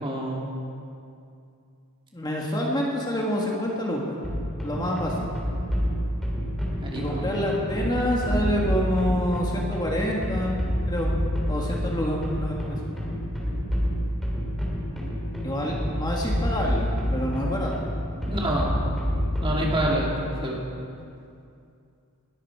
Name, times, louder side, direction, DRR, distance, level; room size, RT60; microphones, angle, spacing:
voice 1, 0.0-0.5 6.8-7.2 18.2-18.7 19.4-20.6, right 1 dB, 25° right, -2 dB, 2.5 m, -27 dB
voice 2, 2.1-4.2 4.6-5.3 6.9-10.6 10.9-11.1 11.5-12.8 15.4-17.7, equal, 20° left, -2 dB, 1.7 m, -27 dB
sound 1, 4.2-20.2, equal, ahead, 3.5 m, -28 dB
20.5 x 13.0 x 4.7 m, 2.5 s
head